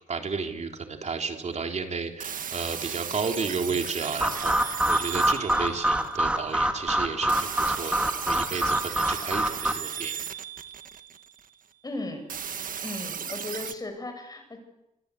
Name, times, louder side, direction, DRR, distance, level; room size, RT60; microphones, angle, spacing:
voice 1, 0.1-7.9 8.3-10.2, right 5 dB, 50° right, 4 dB, 3.5 m, -32 dB
sound 1, 2.2-6.4 7.3-11.5 12.3-13.7, right 7 dB, 75° right, 1.5 m, -36 dB
sound 2, 4.2-9.7, right 1 dB, 10° right, 2.5 m, -26 dB
voice 2, 11.8-12.3 12.8-14.6, left 2 dB, 25° left, 6 dB, 7.0 m, -36 dB
25.5 x 25.5 x 8.5 m, 0.91 s
wide cardioid pair, 140°, 14 cm